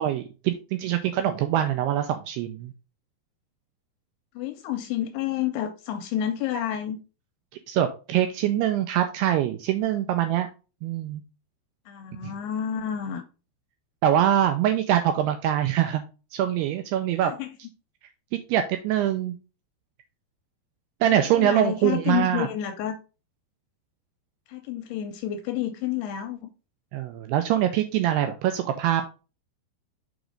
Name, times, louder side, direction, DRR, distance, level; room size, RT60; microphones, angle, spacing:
voice 1, 0.0-2.7 7.7-10.5 10.8-11.2 12.2-12.3 14.0-16.0 16.3-17.3 18.5-19.4 21.0-22.5 26.9-29.1, right 11 dB, 85° right, 2.3 m, -24 dB
voice 2, 4.4-7.0 11.9-13.3 17.2-17.5 21.1-23.0 24.5-26.5, left 10 dB, 85° left, 2.4 m, -30 dB
6.2 x 5.0 x 3.8 m
omnidirectional pair, 5.2 m